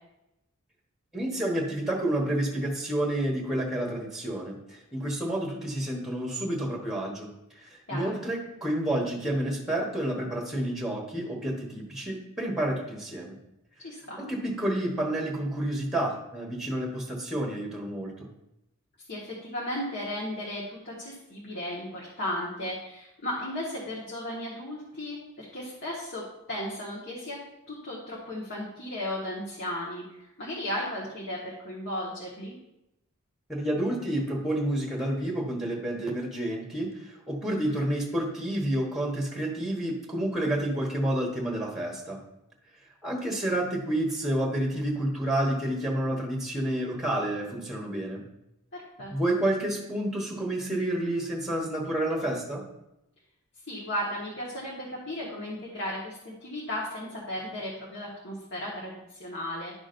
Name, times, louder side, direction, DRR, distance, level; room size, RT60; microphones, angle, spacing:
voice 1, 1.1-7.3 7.5-13.4 14.2-18.3 33.5-42.2 43.0-48.2 49.1-52.6, right 1 dB, ahead, 0 dB, 1.2 m, -29 dB
voice 2, 13.8-14.2 19.1-26.2 26.5-27.4 27.7-32.5 37.5-37.8 48.7-49.1 53.7-59.7, left 1 dB, 50° left, -5 dB, 1.5 m, -35 dB
11.0 x 6.2 x 2.6 m, 0.89 s
head